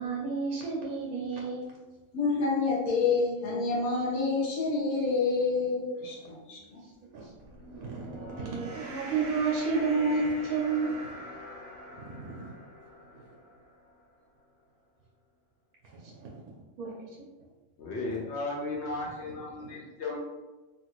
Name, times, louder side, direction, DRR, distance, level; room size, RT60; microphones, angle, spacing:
voice 1, 0.0-1.7 6.2-6.3 7.1-11.1 12.2-12.5 15.8-16.4 16.8-17.1 19.6-19.7, right 4 dB, 85° right, -3 dB, 1.1 m, -31 dB
voice 2, 2.1-6.8, left 4 dB, 80° left, -4 dB, 1.3 m, -28 dB
sound 1, 7.4-13.9, equal, 45° right, 0.7 m, -44 dB
voice 3, 17.8-20.2, left 2 dB, 60° left, -3 dB, 0.8 m, -35 dB
3.0 x 2.4 x 2.9 m, 1.2 s
omnidirectional pair, 1.5 m